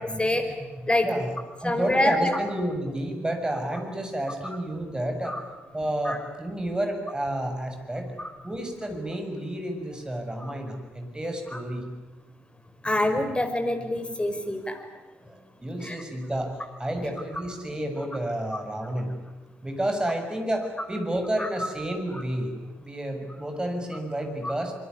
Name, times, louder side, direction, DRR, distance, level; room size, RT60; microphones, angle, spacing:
voice 1, 0.2-1.1 1.6-2.4 5.2-5.4 6.0-6.2 8.2-8.3 11.5-11.6 12.8-14.8 15.8-16.0 18.5-18.6 21.4-21.7 24.4-24.5, left 1 dB, 15° left, 7 dB, 5.3 m, -26 dB
voice 2, 1.0-1.4 1.6-5.4 5.7-8.1 8.4-11.9 15.2-19.1 19.6-24.8, right 1 dB, 15° right, 4 dB, 7.0 m, -30 dB
24.5 x 23.0 x 9.8 m, 1.2 s
figure-of-eight pair, 40°, 6 cm